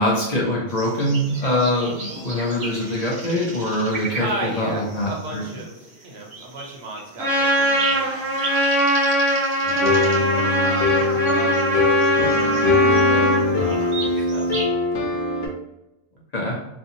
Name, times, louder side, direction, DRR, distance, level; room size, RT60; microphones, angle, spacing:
voice 1, 0.0-4.3 4.6-5.4 16.3-16.6, left 1 dB, 50° left, -4 dB, 0.6 m, -23 dB
sound 1, 0.7-14.7, right 3 dB, 45° right, 0.5 m, -36 dB
voice 2, 4.2-8.2 10.0-14.5, right 2 dB, 70° right, -1 dB, 1.0 m, -35 dB
Trumpet, 7.2-13.4, right 1 dB, ahead, 0.8 m, -21 dB
sound 2, 9.7-15.5, left 3 dB, 75° left, 0.8 m, -21 dB
2.6 x 2.5 x 2.7 m, 0.93 s
omnidirectional pair, 1.1 m